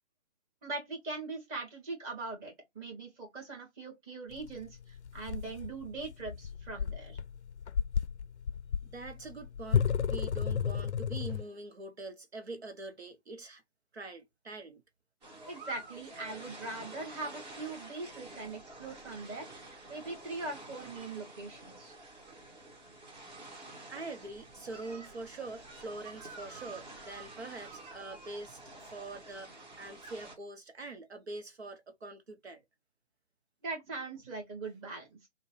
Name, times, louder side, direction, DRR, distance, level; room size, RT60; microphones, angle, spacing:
voice 1, 0.6-7.2 15.5-19.5 19.9-21.9 33.6-35.3, right 3 dB, 15° right, 1.4 m, -41 dB
sound 1, 4.3-11.4, left 7 dB, 75° left, 0.5 m, -33 dB
voice 2, 8.8-13.6 13.9-14.8 23.9-32.6, right 3 dB, 65° right, 0.9 m, -44 dB
sound 2, 15.2-30.4, right 2 dB, 35° right, 2.1 m, -49 dB
6.3 x 2.3 x 3.2 m
figure-of-eight pair, 140°, 35 cm